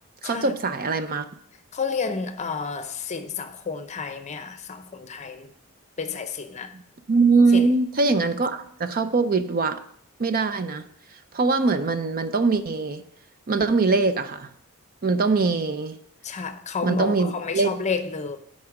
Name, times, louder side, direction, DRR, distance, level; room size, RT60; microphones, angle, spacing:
voice 1, 0.2-1.3 6.7-6.8 7.1-9.8 10.2-10.8 11.3-13.0 13.5-14.5 15.0-16.0 16.8-17.7, right 3 dB, 40° right, 0.5 m, -22 dB
voice 2, 1.7-5.5 6.0-6.8 7.5-7.7 16.2-18.4, left 5 dB, 30° left, 0.7 m, -30 dB
8.6 x 5.4 x 5.9 m
head